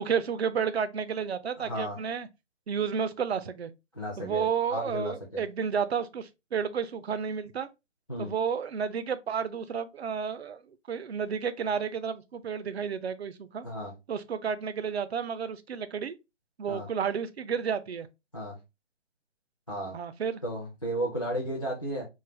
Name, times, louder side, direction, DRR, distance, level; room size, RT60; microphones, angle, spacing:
voice 1, 0.0-2.3 2.7-3.7 4.2-7.7 8.2-10.6 10.9-13.6 14.1-16.1 16.6-18.1 19.9-20.4, right 7 dB, 60° right, 0.5 m, -31 dB
voice 2, 1.6-2.0 3.9-5.4 8.1-8.3 13.6-13.9 16.7-16.9 18.3-18.6 19.7-20.0 20.4-22.1, equal, 30° left, 0.4 m, -34 dB
3.2 x 2.1 x 3.1 m
hypercardioid pair, 170°, 37 cm